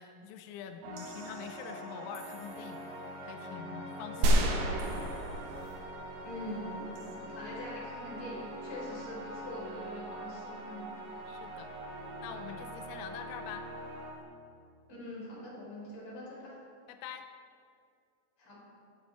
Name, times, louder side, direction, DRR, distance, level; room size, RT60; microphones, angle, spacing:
voice 1, 0.0-2.9 3.2-4.6 11.3-11.7 12.2-13.7 16.9-17.3, left 9 dB, 85° left, 8 dB, 3.2 m, -45 dB
sound 1, 0.8-14.1, right 1 dB, 60° right, 3.3 m, -43 dB
sound 2, 0.9-3.1 4.8-5.7 6.9-7.1, right 3 dB, 40° right, 2.4 m, -56 dB
sound 3, 4.2-6.5, right 2 dB, 80° right, 1.9 m, -29 dB
voice 2, 6.2-10.8 14.9-16.5 18.4-18.6, left 1 dB, 30° left, -5 dB, 4.3 m, -43 dB
16.5 x 12.5 x 3.3 m, 2.4 s
omnidirectional pair, 5.6 m